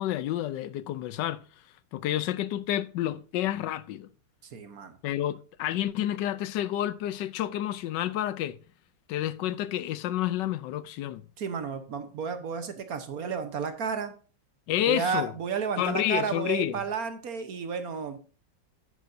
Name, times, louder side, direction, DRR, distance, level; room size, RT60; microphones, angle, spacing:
voice 1, 0.0-1.4 1.9-4.1 5.0-8.6 9.1-11.2 14.7-15.3 15.8-16.8, left 12 dB, 80° left, 1.2 m, -29 dB
voice 2, 4.5-4.9 11.4-14.1 14.8-18.2, right 6 dB, 60° right, 1.4 m, -32 dB
10.0 x 9.4 x 2.6 m
omnidirectional pair, 2.0 m